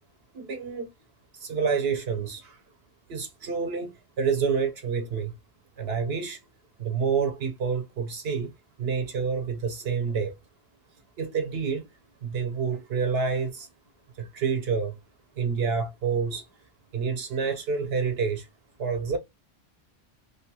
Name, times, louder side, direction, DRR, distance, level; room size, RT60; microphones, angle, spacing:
voice 1, 0.3-0.9 1.3-2.6 3.1-5.3 5.8-6.4 6.8-8.5 8.8-10.4 11.2-11.9 12.2-13.7 14.2-14.9 15.4-16.5 16.9-18.5 18.8-19.2, right 5 dB, 70° right, 0.8 m, -28 dB
2.7 x 2.2 x 2.7 m
omnidirectional pair, 1.1 m